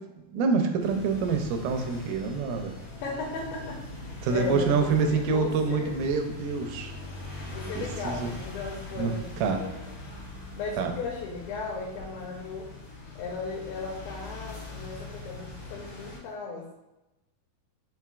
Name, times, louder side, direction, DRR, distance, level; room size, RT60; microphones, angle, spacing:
voice 1, 0.3-2.7 4.2-6.9 7.4-7.5 7.7-8.3 9.0-9.6 10.8-10.9, right 5 dB, 85° right, 5 dB, 2.3 m, -27 dB
sound 1, 0.8-16.2, left 2 dB, 55° left, 1.4 m, -41 dB
voice 2, 3.0-5.9 7.5-9.7 10.6-12.7 13.2-16.7, left 4 dB, 85° left, -2 dB, 2.3 m, -36 dB
5.8 x 2.9 x 2.3 m, 0.98 s
omnidirectional pair, 4.2 m